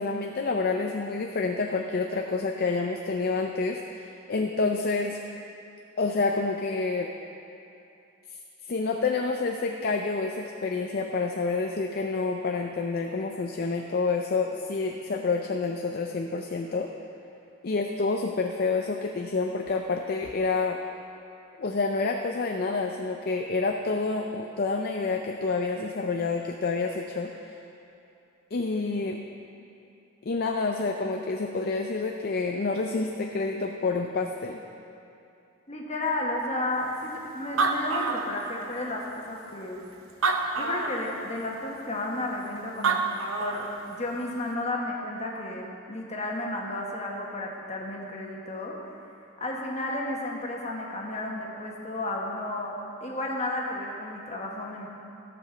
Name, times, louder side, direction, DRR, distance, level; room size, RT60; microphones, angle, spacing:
voice 1, 0.0-5.2 6.0-7.1 8.7-16.9 17.6-20.8 21.6-27.6 28.5-29.2 30.2-34.6, left 3 dB, 50° left, 2 dB, 0.5 m, -28 dB
voice 2, 35.7-39.8 40.5-43.0 43.4-48.7 49.4-54.9, left 2 dB, 35° left, -2 dB, 1.5 m, -32 dB
Animal, 37.1-37.2 37.4-38.8 39.5-39.6 40.1-41.1 42.5-42.6 42.8-43.8, right 4 dB, 75° right, 0.8 m, -27 dB
14.5 x 5.2 x 7.0 m, 2.7 s
head